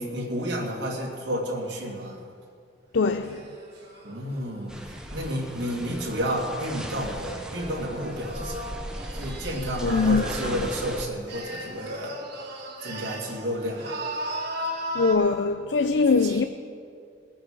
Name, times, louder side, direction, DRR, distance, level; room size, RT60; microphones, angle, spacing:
voice 1, 0.0-2.3 4.0-8.7 9.1-12.2 12.8-13.9 16.0-16.4, equal, 85° right, 2.4 m, -31 dB
voice 2, 2.9-3.4 9.8-10.2 14.9-16.4, left 4 dB, 85° left, 0.5 m, -22 dB
sound 1, 3.2-6.6 7.2-10.9 11.3-13.4 13.7-15.1, right 1 dB, 65° right, 3.0 m, -37 dB
sound 2, 4.7-11.1, equal, 5° right, 0.9 m, -37 dB
21.0 x 8.6 x 4.9 m
head